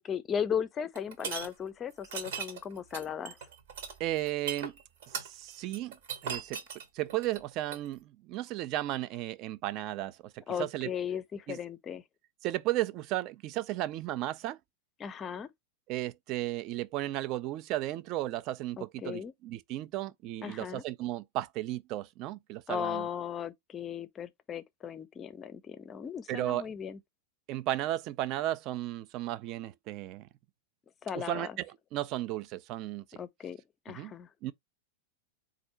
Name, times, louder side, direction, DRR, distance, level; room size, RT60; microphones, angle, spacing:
voice 1, 0.0-3.4 10.5-12.0 15.0-15.5 18.8-19.3 20.4-20.8 22.7-27.0 31.0-31.6 33.2-33.6 33.9-34.5, left 8 dB, 25° left, 0.5 m, -36 dB
sound 1, 1.0-1.5 2.0-7.9, right 6 dB, 55° right, 1.1 m, -38 dB
voice 2, 4.0-4.8 5.1-6.0 6.2-6.6 6.9-10.9 11.5-11.6 12.4-14.6 15.9-23.1 26.3-26.6 27.5-30.3 31.1-31.7 31.9-33.2 33.9-34.1 34.4-34.5, right 15 dB, 40° right, 0.4 m, -34 dB
4.3 x 2.5 x 4.2 m
figure-of-eight pair, 90°, 0 cm